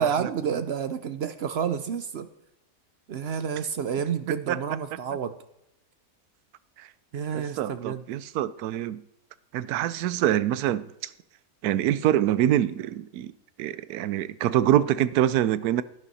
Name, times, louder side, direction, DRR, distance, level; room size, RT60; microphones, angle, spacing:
voice 1, 0.0-2.3 3.1-5.3 7.1-8.0, right 7 dB, 60° right, 0.7 m, -29 dB
voice 2, 7.3-9.0 9.5-10.8 11.6-13.3 13.6-15.8, right 12 dB, 90° right, 1.1 m, -25 dB
11.5 x 11.0 x 4.1 m
omnidirectional pair, 1.6 m